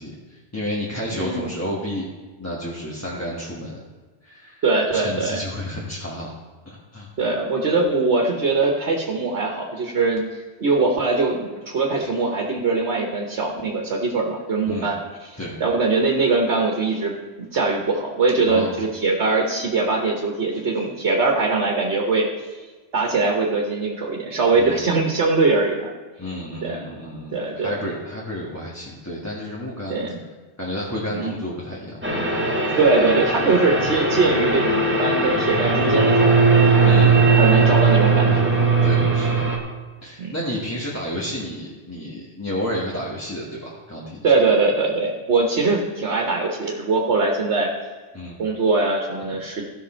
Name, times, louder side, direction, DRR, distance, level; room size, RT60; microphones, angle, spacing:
voice 1, 0.0-2.0 2.4-3.8 4.2-4.6 4.9-6.3 6.6-7.1 14.6-14.9 15.4-15.5 18.4-18.8 24.5-24.8 26.2-30.0 30.6-32.4 32.7-32.8 33.8-33.9 36.8-37.7 38.8-39.4 40.0-44.3 48.1-48.4, left 1 dB, 15° left, -6 dB, 1.4 m, -31 dB
voice 2, 1.1-1.5 4.6-5.4 7.2-15.3 15.6-22.3 22.5-22.6 22.9-25.9 26.6-26.8 27.3-27.8 29.9-30.2 31.1-31.3 32.8-36.5 37.3-38.6 40.2-40.3 44.2-47.7 48.4-49.7, right 3 dB, 75° right, 0 dB, 1.4 m, -22 dB
sound 1, 32.0-39.6, right 4 dB, 10° right, 1.3 m, -18 dB
15.5 x 6.0 x 4.4 m, 1.3 s
omnidirectional pair, 1.1 m